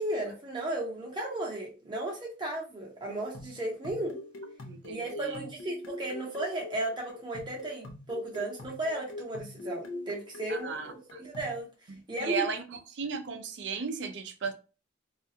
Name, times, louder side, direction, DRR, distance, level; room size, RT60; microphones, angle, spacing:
voice 1, 0.0-4.2 4.9-11.7 12.1-12.5, right 1 dB, 25° right, 0.9 m, -35 dB
sound 1, 3.1-11.6, left 2 dB, 85° left, 0.5 m, -43 dB
voice 2, 4.6-5.5 10.5-11.2 11.9-14.5, right 5 dB, 60° right, 0.5 m, -36 dB
2.4 x 2.2 x 2.7 m
head